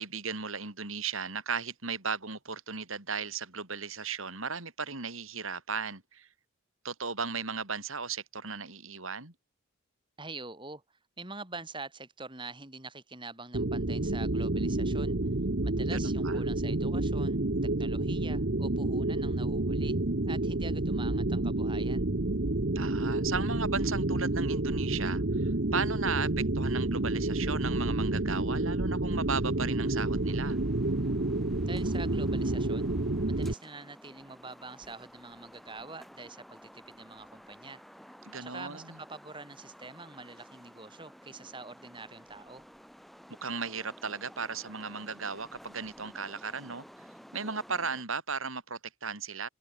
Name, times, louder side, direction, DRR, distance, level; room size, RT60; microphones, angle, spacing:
voice 1, 0.0-6.3 6.8-9.3 15.9-16.4 22.7-30.6 38.2-39.0 43.4-47.1 47.3-49.5, right 5 dB, 75° right, 4.6 m, -36 dB
voice 2, 10.2-15.2 15.6-20.0 20.3-22.1 31.7-32.9 33.3-37.8 38.4-42.7, right 3 dB, 20° right, 5.7 m, -45 dB
sound 1, 13.5-33.5, right 2 dB, 50° right, 1.2 m, -29 dB
sound 2, 29.3-48.0, equal, ahead, 3.4 m, -53 dB
head